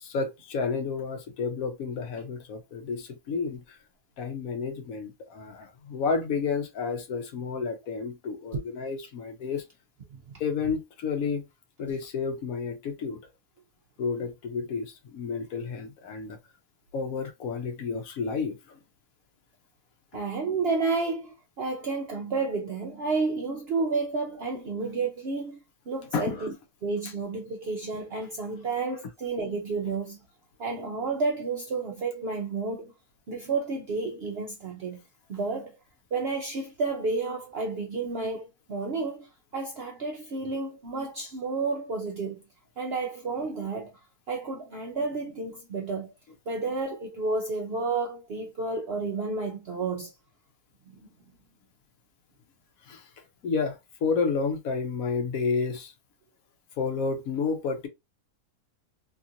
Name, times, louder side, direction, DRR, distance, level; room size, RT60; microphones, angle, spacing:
voice 1, 0.0-3.8 4.2-9.6 10.4-11.4 11.8-13.2 14.0-16.4 16.9-18.8 26.1-26.5 52.9-53.0 53.4-55.9 56.8-57.9, left 5 dB, 70° left, 1.0 m, -31 dB
voice 2, 20.1-25.6 25.9-26.5 26.8-30.2 30.6-32.9 33.3-35.0 35.3-35.8 36.1-42.4 42.8-43.9 44.3-46.1 46.5-50.1 50.9-51.0, right 3 dB, 65° right, 0.6 m, -31 dB
2.9 x 2.4 x 2.7 m
omnidirectional pair, 1.6 m